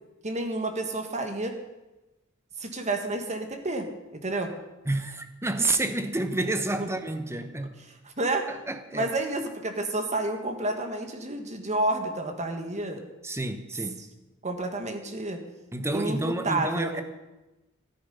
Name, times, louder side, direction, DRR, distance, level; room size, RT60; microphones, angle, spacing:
voice 1, 0.2-1.5 2.6-4.5 6.8-6.9 8.2-8.4 8.9-13.0 14.4-15.4 15.9-17.0, right 2 dB, 35° right, 1.8 m, -30 dB
voice 2, 4.9-7.8 8.5-9.1 13.2-14.0 15.7-17.0, right 2 dB, 15° right, 1.1 m, -29 dB
14.0 x 13.5 x 5.6 m
head